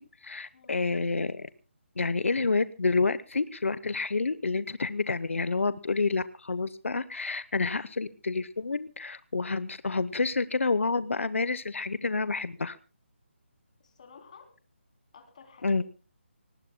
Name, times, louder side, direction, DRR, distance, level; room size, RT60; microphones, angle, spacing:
voice 1, 0.2-1.5 2.0-12.8 15.6-15.8, left 4 dB, 85° left, 15 dB, 0.9 m, -29 dB
voice 2, 13.8-14.5 15.1-15.8, left 5 dB, 35° left, 4 dB, 3.3 m, -53 dB
25.0 x 19.5 x 2.2 m, 0.35 s
hypercardioid pair, 175°, 7 cm